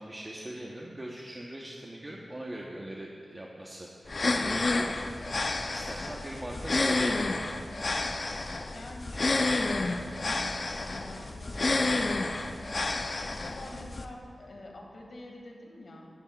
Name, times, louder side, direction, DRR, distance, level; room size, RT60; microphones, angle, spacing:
voice 1, 0.0-5.3 5.7-7.4, right 1 dB, 25° right, -2 dB, 0.9 m, -41 dB
sound 1, 4.1-14.0, left 2 dB, 45° left, 0.6 m, -30 dB
voice 2, 8.7-12.1 13.3-16.1, left 2 dB, 65° left, 0 dB, 2.0 m, -46 dB
18.0 x 11.5 x 2.4 m, 2.3 s
wide cardioid pair, 100°, 0 cm